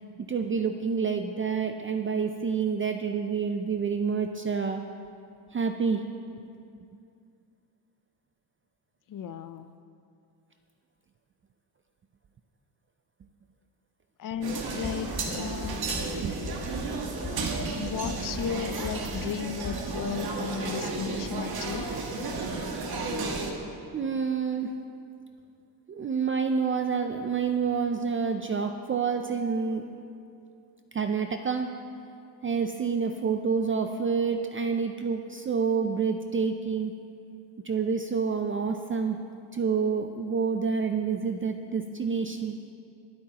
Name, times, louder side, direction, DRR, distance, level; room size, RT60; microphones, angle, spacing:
voice 1, 0.3-4.8 5.5-6.0 16.2-16.3 23.9-24.7 25.9-29.8 30.9-31.7 32.4-36.9 37.6-39.2 39.5-42.6, right 5 dB, 30° right, 5 dB, 0.4 m, -28 dB
voice 2, 9.1-9.7 14.2-15.9 17.8-21.9, left 7 dB, 50° left, 11 dB, 0.5 m, -35 dB
sound 1, 14.4-23.5, right 3 dB, 55° right, 1.5 m, -33 dB
sound 2, 14.8-15.3 15.6-16.1 16.4-16.9 17.2-17.7 18.0-18.5 18.8-19.3 19.6-19.8, left 3 dB, 35° left, 1.8 m, -37 dB
20.5 x 8.6 x 2.9 m, 2.5 s
cardioid pair, 115°, 43 cm